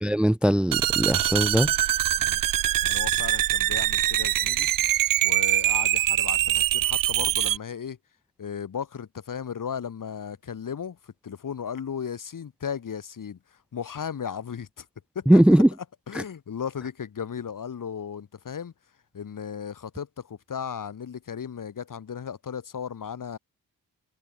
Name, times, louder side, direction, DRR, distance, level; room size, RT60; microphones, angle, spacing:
voice 1, 0.0-1.7 15.3-15.7 16.1-16.2, right 1 dB, 5° right, 0.6 m, -19 dB
sound 1, 0.7-7.6, right 13 dB, 60° right, 0.6 m, -23 dB
voice 2, 2.8-4.7 5.2-8.0 8.4-13.4 13.7-14.9 15.1-15.4 16.1-18.7 19.1-23.4, left 7 dB, 55° left, 2.6 m, -35 dB
supercardioid pair, 55°, 38 cm